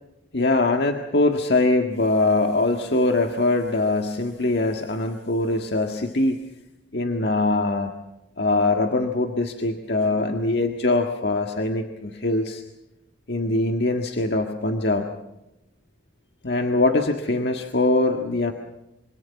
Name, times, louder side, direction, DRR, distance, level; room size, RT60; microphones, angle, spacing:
voice 1, 0.3-6.4 6.9-7.9 8.4-12.6 13.3-15.1 16.4-18.5, left 2 dB, 60° left, 3 dB, 1.7 m, -22 dB
26.5 x 25.5 x 5.9 m, 0.91 s
head